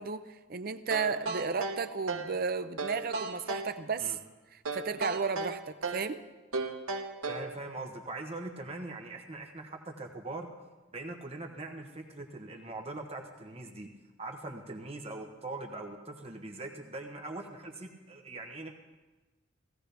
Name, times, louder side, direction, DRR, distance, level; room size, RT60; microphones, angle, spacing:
voice 1, 0.0-4.2 4.5-6.2, right 5 dB, 45° right, 10 dB, 0.6 m, -34 dB
sound 1, 0.9-2.4 2.8-3.7 4.7-6.1 6.5-7.5, right 3 dB, 75° right, 1.1 m, -35 dB
voice 2, 7.3-10.5 10.9-13.9 14.2-18.7, right 2 dB, 30° right, 3 dB, 1.1 m, -41 dB
17.5 x 15.0 x 3.4 m, 1.2 s
head